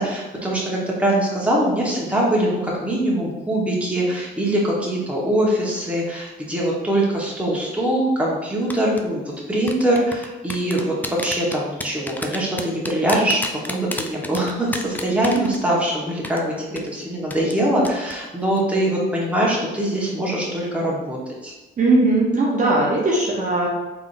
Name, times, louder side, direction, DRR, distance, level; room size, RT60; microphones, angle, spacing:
voice 1, 0.0-21.2 21.4-21.5, right 1 dB, 5° right, -4 dB, 1.2 m, -22 dB
sound 1, 8.7-9.0 9.7-15.9 16.2-16.4 16.8-16.9 17.3-17.6 17.8-18.1 18.4-18.6, left 2 dB, 10° left, 0.4 m, -30 dB
voice 2, 21.8-23.7, right 2 dB, 40° right, -4 dB, 0.8 m, -19 dB
3.6 x 3.5 x 2.6 m, 1.1 s
cardioid pair, 90°, 20 cm